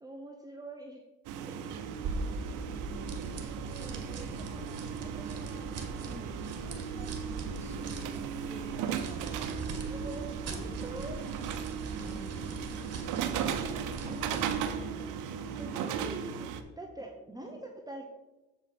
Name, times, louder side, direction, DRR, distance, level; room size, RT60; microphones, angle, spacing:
voice 1, 0.0-1.0 1.5-1.9 2.4-3.3 6.0-6.4 9.7-11.5 14.1-14.4 15.4-18.1, right 1 dB, 10° right, 1 dB, 0.9 m, -45 dB
voice 2, 1.3-2.3 3.8-6.1 6.6-9.6 10.5-11.2 11.8-13.6 14.7-15.4 17.4-17.6, equal, 20° left, 2 dB, 2.1 m, -52 dB
sound 1, 1.3-16.6, right 7 dB, 90° right, 0.7 m, -36 dB
sound 2, 1.9-14.8, right 3 dB, 55° right, 1.7 m, -41 dB
7.8 x 4.9 x 5.7 m, 1.1 s
cardioid pair, 90°, 30 cm